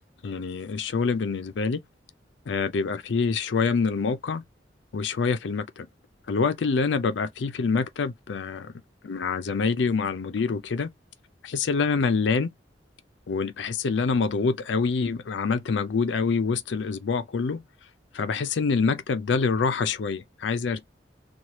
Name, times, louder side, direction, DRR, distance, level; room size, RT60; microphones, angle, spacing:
voice 1, 0.2-1.8 2.5-4.4 4.9-5.9 6.3-8.7 9.0-10.9 11.4-12.5 13.3-17.6 18.1-20.9, left 4 dB, 85° left, 0.5 m, -26 dB
3.1 x 2.3 x 2.8 m
head